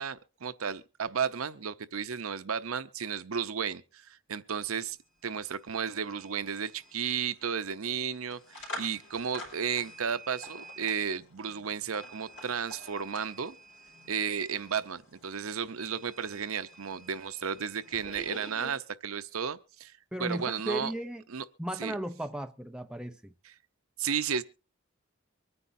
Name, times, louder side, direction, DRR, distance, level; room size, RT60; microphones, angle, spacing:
voice 1, 0.0-5.0 5.2-13.6 14.1-19.9 20.2-20.9 21.3-21.4 21.8-21.9 23.4-23.5 24.0-24.4, right 7 dB, 85° right, 0.7 m, -33 dB
sound 1, 4.9-5.0 5.2-18.7, equal, 60° left, 5.4 m, -48 dB
voice 2, 20.1-21.2 21.6-23.3, right 1 dB, 5° right, 0.6 m, -35 dB
24.0 x 9.8 x 2.7 m
head